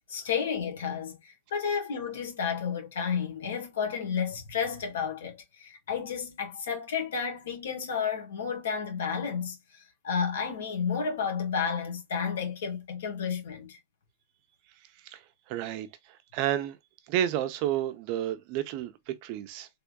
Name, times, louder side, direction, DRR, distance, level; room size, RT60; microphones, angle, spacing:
voice 1, 0.1-13.8, left 6 dB, 85° left, 1.7 m, -32 dB
voice 2, 15.0-16.8 17.1-19.7, right 11 dB, 45° right, 0.6 m, -31 dB
3.5 x 3.4 x 2.2 m
supercardioid pair, 150°, 0 cm